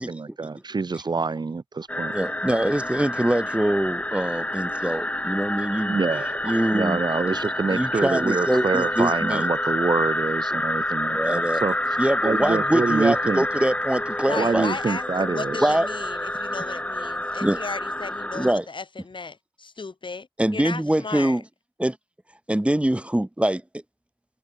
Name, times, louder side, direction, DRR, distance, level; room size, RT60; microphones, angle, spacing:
voice 1, 0.0-2.1 5.9-12.0 12.2-13.5 14.4-15.7, right 4 dB, 50° right, 0.6 m, -26 dB
sound 1, 1.9-18.5, left 1 dB, 15° left, 2.0 m, -28 dB
voice 2, 2.1-6.0 6.4-7.0 7.7-9.5 11.1-11.6 12.0-14.7 15.6-15.9 17.4-17.6 18.3-18.6 20.4-21.4 21.8-22.0 22.5-23.6, right 1 dB, 10° right, 1.3 m, -24 dB
voice 3, 14.2-20.3 20.5-21.4, left 4 dB, 60° left, 1.8 m, -35 dB
wide cardioid pair, 90°, 10 cm